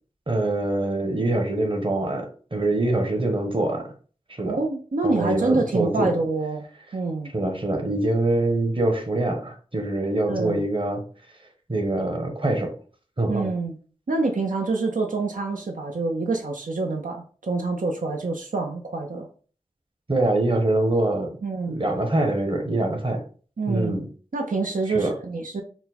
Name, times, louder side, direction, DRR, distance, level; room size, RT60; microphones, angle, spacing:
voice 1, 0.3-3.9 4.3-4.6 5.0-6.1 7.3-11.0 11.7-12.7 13.2-13.5 20.1-21.4 21.7-23.2 23.7-24.1 24.9-25.1, right 2 dB, 40° right, 4 dB, 1.0 m, -24 dB
voice 2, 4.5-6.7 6.9-7.3 10.3-10.6 13.3-13.8 14.1-19.3 21.4-21.8 23.6-24.0 24.3-25.6, right 3 dB, 85° right, 2 dB, 0.6 m, -26 dB
4.4 x 2.1 x 4.1 m, 0.40 s
wide cardioid pair, 55°, 13 cm